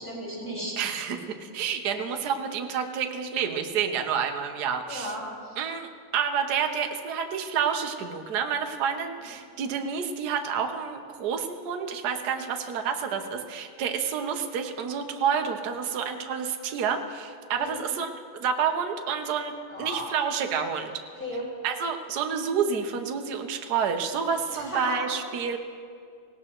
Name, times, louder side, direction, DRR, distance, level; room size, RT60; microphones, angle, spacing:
voice 1, 0.0-0.8 4.9-5.6 9.3-9.4 17.5-17.8 19.7-20.1 21.1-21.4 24.5-25.1, equal, 5° left, -5 dB, 4.4 m, -35 dB
voice 2, 0.8-5.2 5.6-20.9 21.6-25.6, right 7 dB, 60° right, 5 dB, 1.4 m, -29 dB
19.0 x 17.5 x 3.0 m, 2.2 s
omnidirectional pair, 2.2 m